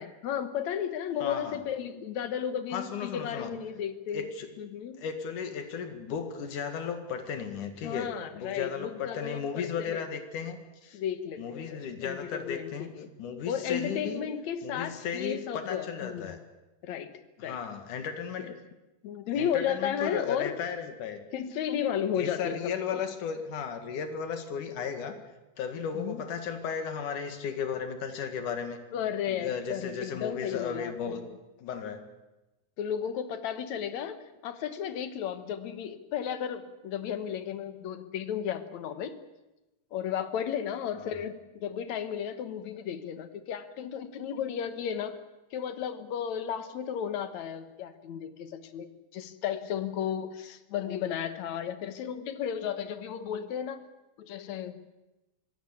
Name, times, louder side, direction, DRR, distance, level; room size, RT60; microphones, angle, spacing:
voice 1, 0.0-4.3 4.6-5.0 7.8-10.1 10.9-12.7 12.9-13.1 13.5-16.3 16.8-17.1 17.4-17.6 18.4-18.6 19.0-20.6 21.3-23.0 25.9-26.2 28.9-30.9 32.8-34.2 34.4-39.2 39.9-45.2 45.5-53.8 54.2-54.8, left 8 dB, 70° left, 11 dB, 2.5 m, -34 dB
voice 2, 1.2-1.6 2.7-3.5 4.1-4.5 5.0-11.0 11.4-12.9 13.2-14.2 14.6-16.4 17.4-18.5 19.3-21.2 22.2-25.1 25.6-28.8 29.3-31.2 31.6-32.0 40.9-41.1, left 7 dB, 90° left, 7 dB, 3.5 m, -35 dB
25.5 x 16.5 x 8.5 m, 1.0 s
omnidirectional pair, 3.5 m